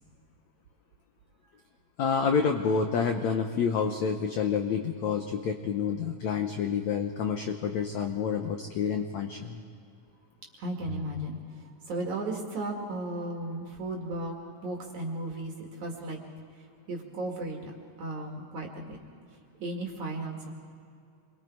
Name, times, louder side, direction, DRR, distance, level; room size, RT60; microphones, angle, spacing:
voice 1, 2.0-9.6, left 6 dB, 85° left, 5 dB, 1.6 m, -28 dB
voice 2, 10.6-16.2 16.5-17.7 18.0-19.0 19.6-20.5, right 2 dB, 55° right, 0 dB, 3.0 m, -35 dB
28.5 x 22.5 x 4.7 m, 2.4 s
omnidirectional pair, 4.6 m